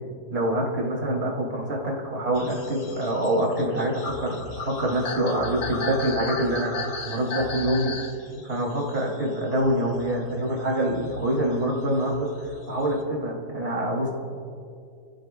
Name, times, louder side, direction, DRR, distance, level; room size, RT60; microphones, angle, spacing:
voice 1, 0.3-7.9 8.4-14.1, right 1 dB, 40° right, -2 dB, 3.1 m, -26 dB
sound 1, 2.3-10.3 10.8-13.0, left 4 dB, 45° left, 1.3 m, -36 dB
29.0 x 15.5 x 2.3 m, 2.4 s
omnidirectional pair, 1.7 m